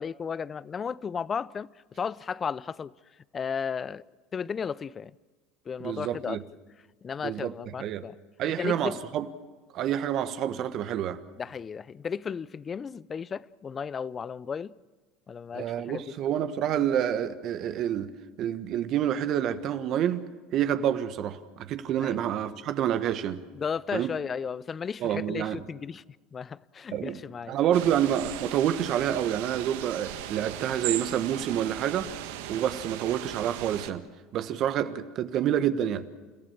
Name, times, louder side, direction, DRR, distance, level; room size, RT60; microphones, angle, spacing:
voice 1, 0.0-2.9 3.3-4.0 4.3-5.1 5.7-6.4 7.0-8.1 8.6-9.0 11.4-14.7 15.3-16.0 22.0-22.2 23.5-26.0 26.3-27.6 32.5-32.6, left 6 dB, 30° left, 0.6 m, -34 dB
voice 2, 5.8-6.4 7.2-7.5 7.8-8.0 8.4-9.2 9.7-11.2 15.5-18.1 18.4-23.4 23.9-24.1 25.0-25.6 26.9-27.2 27.5-32.1 32.5-34.0 34.3-36.0, right 10 dB, 55° right, 1.3 m, -28 dB
sound 1, 27.7-33.9, right 12 dB, 75° right, 1.2 m, -37 dB
29.5 x 15.0 x 7.3 m
hypercardioid pair, 80°, 0 cm